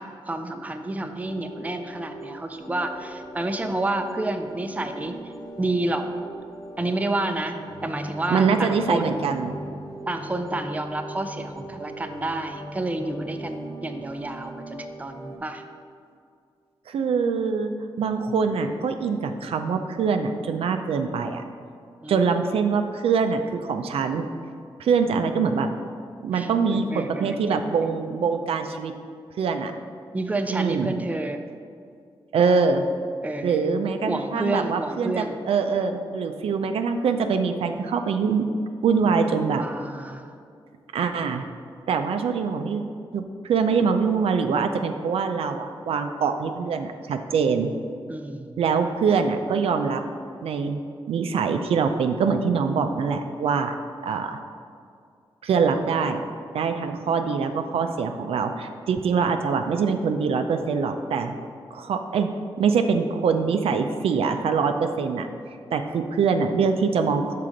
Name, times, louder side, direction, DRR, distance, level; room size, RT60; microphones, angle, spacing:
voice 1, 0.0-6.1 6.8-9.2 10.1-15.6 22.0-22.3 26.3-27.9 30.1-31.4 33.2-33.7 34.1-35.4 39.6-40.3 48.1-48.6, right 2 dB, 15° right, 6 dB, 0.5 m, -30 dB
sound 1, 1.0-15.4, equal, 35° left, 0.8 m, -39 dB
voice 2, 8.3-9.6 16.9-21.4 22.1-24.3 24.8-25.7 26.2-28.9 29.4-29.7 30.5-30.9 32.3-32.8 33.4-38.5 38.8-39.6 40.9-41.5 41.9-42.8 43.1-47.7 48.6-50.0 50.4-50.8 51.1-53.7 54.0-54.4 55.4-56.2 56.5-61.4 61.7-62.3 62.6-65.3 65.7-67.3, right 5 dB, 80° right, 6 dB, 0.4 m, -24 dB
5.9 x 3.7 x 5.1 m, 2.3 s
cardioid pair, 70°, 10 cm